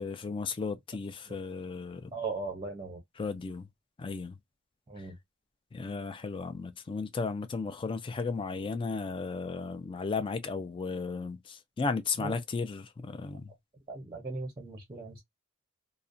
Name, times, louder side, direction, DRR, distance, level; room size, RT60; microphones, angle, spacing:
voice 1, 0.0-2.1 3.2-3.7 4.0-4.4 5.0-5.1 5.7-13.5, left 4 dB, 25° left, 0.3 m, -35 dB
voice 2, 2.1-3.0 4.9-5.2 12.2-12.3 13.9-15.2, right 3 dB, 20° right, 0.6 m, -38 dB
2.4 x 2.1 x 2.5 m
head